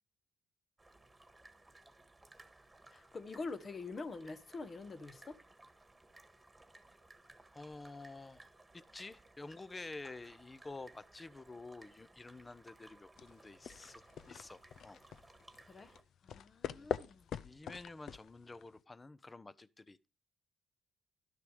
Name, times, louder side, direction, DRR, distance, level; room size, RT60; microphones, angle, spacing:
sound 1, 0.8-16.0, right 2 dB, 10° right, 1.6 m, -61 dB
voice 1, 2.9-5.4 15.6-15.9 16.2-17.3, left 3 dB, 40° left, 1.1 m, -45 dB
voice 2, 7.5-15.0 16.7-17.0 17.4-20.1, left 3 dB, 20° left, 0.7 m, -50 dB
sound 2, 13.2-18.8, left 8 dB, 70° left, 0.5 m, -44 dB
12.0 x 6.6 x 4.9 m
cardioid pair, 90°, 0 cm